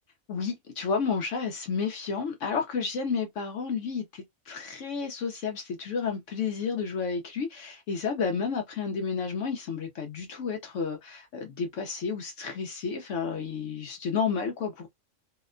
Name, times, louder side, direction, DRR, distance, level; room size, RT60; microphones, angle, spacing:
voice 1, 0.3-14.9, left 5 dB, 70° left, 1.0 m, -31 dB
2.8 x 2.1 x 2.4 m
omnidirectional pair, 1.4 m